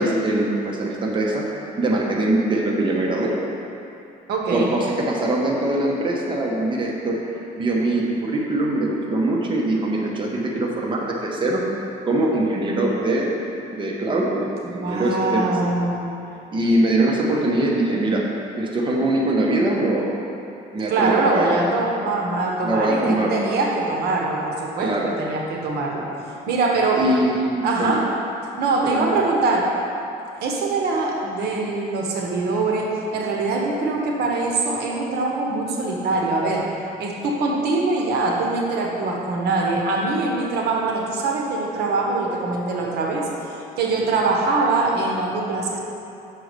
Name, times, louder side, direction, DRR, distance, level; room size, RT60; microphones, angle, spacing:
voice 1, 0.0-1.4 1.8-3.3 4.5-11.6 12.1-13.3 13.7-15.5 16.5-18.3 18.5-20.2 20.7-21.6 22.6-23.3 24.8-25.1 27.0-28.0 28.8-29.2, right 1 dB, 30° right, -2 dB, 1.0 m, -22 dB
voice 2, 4.3-4.7 14.6-16.0 20.9-26.0 26.5-27.0 27.6-28.1 28.6-29.7 30.4-36.7 37.0-45.8, right 3 dB, 75° right, -1 dB, 1.1 m, -23 dB
6.2 x 4.8 x 6.7 m, 2.7 s
cardioid pair, 110°, 17 cm